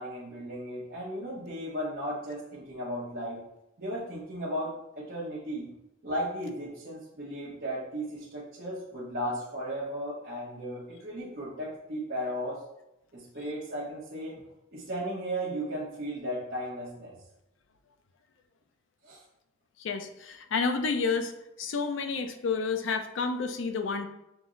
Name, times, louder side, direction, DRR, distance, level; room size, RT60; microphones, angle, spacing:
voice 1, 0.0-3.4 3.8-5.7 6.0-12.6 13.1-14.4 14.7-17.1 19.0-19.2, equal, 50° right, -9 dB, 0.9 m, -35 dB
voice 2, 19.8-21.3 21.6-24.1, left 4 dB, 70° left, 7 dB, 0.4 m, -30 dB
5.8 x 2.0 x 3.8 m, 0.88 s
head